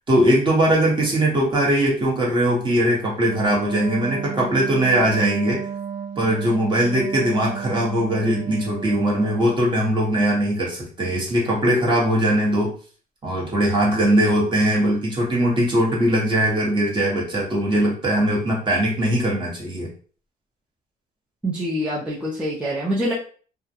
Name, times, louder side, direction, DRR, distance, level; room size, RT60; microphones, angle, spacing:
voice 1, 0.1-5.7 6.2-12.7 13.2-19.9, right 1 dB, 30° right, -3 dB, 1.1 m, -20 dB
Wind instrument woodwind instrument, 3.2-9.7, right 7 dB, 75° right, 0.4 m, -33 dB
voice 2, 21.4-23.1, equal, 5° right, -6 dB, 0.5 m, -25 dB
2.3 x 2.1 x 2.7 m, 0.41 s
cardioid pair, 110°, 17 cm